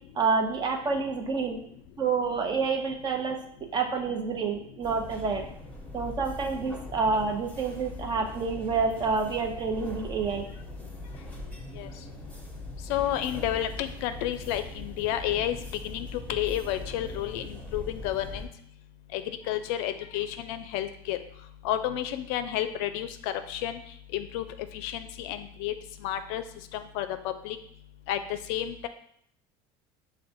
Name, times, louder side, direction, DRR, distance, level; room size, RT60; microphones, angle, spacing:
voice 1, 0.2-1.6 2.0-3.4 3.7-5.4 5.9-10.5, right 4 dB, 30° right, 3 dB, 0.7 m, -28 dB
sound 1, 4.8-18.5, left 2 dB, 10° left, 1.0 m, -41 dB
voice 2, 12.9-15.6 15.8-18.5 19.1-19.2 19.5-21.2 21.6-23.8 24.1-24.4 24.7-25.7 26.0-26.4 26.7-27.1 27.4-27.6 28.1-28.2 28.5-28.9, left 12 dB, 70° left, 9 dB, 0.4 m, -31 dB
5.9 x 2.2 x 2.6 m, 0.66 s
supercardioid pair, 100°, 13 cm